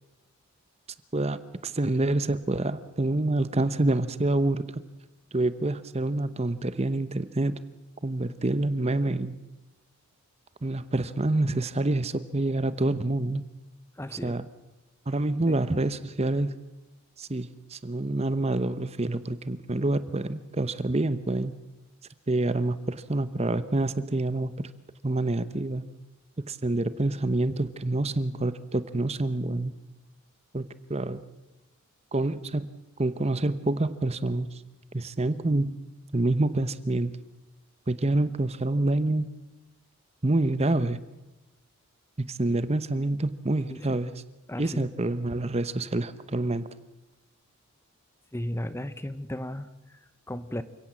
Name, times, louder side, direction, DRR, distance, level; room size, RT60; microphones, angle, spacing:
voice 1, 1.1-4.8 5.3-7.6 8.0-9.4 10.6-13.5 14.2-14.5 15.1-16.6 17.2-21.5 22.3-24.7 25.0-25.8 26.4-29.7 30.5-30.6 30.9-31.2 32.1-32.7 33.0-34.6 34.9-35.8 36.1-37.1 37.9-39.3 40.2-41.0 42.2-44.1 44.6-46.7, right 2 dB, 30° right, 14 dB, 0.8 m, -27 dB
voice 2, 13.9-14.4 15.5-15.6 43.7-44.0 44.5-44.9 48.3-50.6, left 1 dB, 10° left, 13 dB, 0.8 m, -35 dB
29.0 x 17.0 x 7.4 m, 1.0 s
head